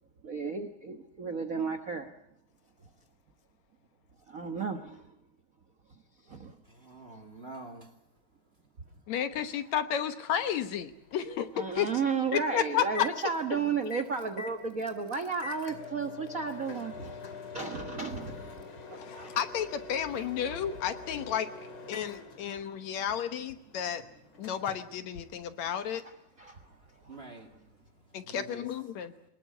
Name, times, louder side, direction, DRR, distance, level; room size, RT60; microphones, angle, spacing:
voice 1, 0.2-2.1 4.3-5.0 6.3-6.6 11.6-19.4 20.1-20.2 25.9-26.0 26.4-26.6 27.0-27.3, right 5 dB, 65° right, 7 dB, 0.8 m, -34 dB
voice 2, 6.7-7.9 27.1-27.5 28.2-28.6, right 2 dB, 20° right, 7 dB, 1.9 m, -46 dB
voice 3, 9.1-11.5 11.8-11.9 12.3-13.1 19.0-21.5 21.9-24.0 24.4-26.0 28.1-29.1, left 9 dB, 65° left, 10 dB, 2.2 m, -32 dB
Microwave oven, 10.3-26.0, left 4 dB, 40° left, 3.1 m, -46 dB
24.5 x 20.0 x 8.3 m, 0.75 s
omnidirectional pair, 3.6 m